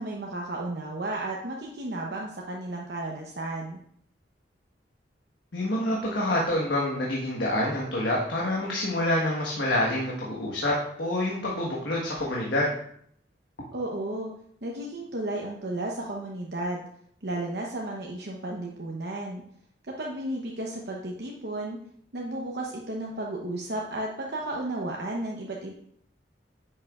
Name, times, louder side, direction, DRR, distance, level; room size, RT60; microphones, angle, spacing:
voice 1, 0.0-3.8 13.7-14.3 14.6-16.9 17.2-19.4 19.9-21.8 22.1-25.7, right 1 dB, 65° right, -1 dB, 0.9 m, -33 dB
voice 2, 5.5-12.7, left 1 dB, 75° left, -4 dB, 1.4 m, -27 dB
9.8 x 6.5 x 2.4 m, 0.66 s
head